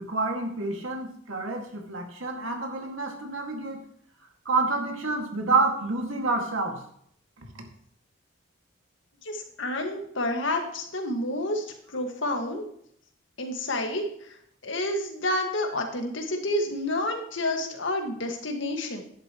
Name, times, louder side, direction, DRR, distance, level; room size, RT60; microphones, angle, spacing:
voice 1, 0.0-3.8 4.5-6.8, right 3 dB, 80° right, 2 dB, 2.2 m, -28 dB
voice 2, 9.2-11.7 11.9-12.7 13.4-14.0 14.6-19.0, left 1 dB, 70° left, 3 dB, 1.8 m, -29 dB
11.5 x 11.0 x 3.1 m, 0.67 s
head